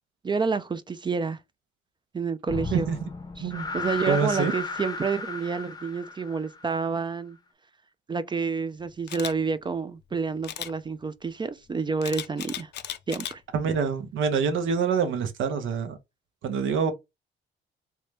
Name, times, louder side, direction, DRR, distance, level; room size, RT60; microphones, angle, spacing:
voice 1, 0.2-1.4 2.1-2.9 3.4-7.4 8.1-12.7 13.1-13.3, right 5 dB, 25° right, 0.4 m, -29 dB
sound 1, 2.5-6.9, left 4 dB, 20° left, 0.7 m, -34 dB
voice 2, 4.1-4.5 13.5-16.0 16.4-16.9, right 6 dB, 80° right, 0.8 m, -26 dB
Camera, 9.1-9.3 10.4-10.7 12.0-13.3 13.8-14.1, left 10 dB, 60° left, 0.5 m, -35 dB
3.2 x 2.7 x 3.4 m
cardioid pair, 90°, 20 cm